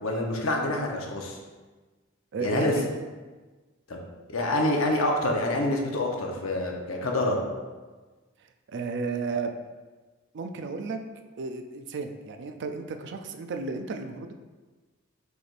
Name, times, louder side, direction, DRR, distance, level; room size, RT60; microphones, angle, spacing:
voice 1, 0.0-1.4 2.4-2.7 3.9-4.0 4.3-7.4, left 1 dB, 70° left, 1 dB, 0.8 m, -26 dB
voice 2, 2.3-2.9 8.7-9.5 10.3-11.0 11.4-14.3, right 4 dB, 55° right, 6 dB, 0.4 m, -33 dB
6.2 x 3.4 x 2.5 m, 1.3 s
head